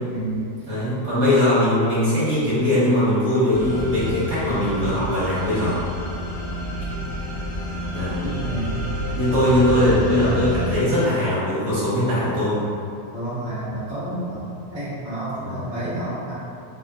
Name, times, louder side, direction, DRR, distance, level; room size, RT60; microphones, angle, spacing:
voice 1, 0.1-0.4 8.2-8.7 13.1-16.3, right 1 dB, 75° right, -11 dB, 0.5 m, -30 dB
voice 2, 0.7-5.8 7.9-8.2 9.1-12.6 15.4-15.6, left 1 dB, 45° right, -12 dB, 0.9 m, -20 dB
sound 1, 3.5-10.7, equal, 80° left, 0.8 m, -29 dB
5.3 x 2.8 x 2.5 m, 2.5 s
omnidirectional pair, 3.3 m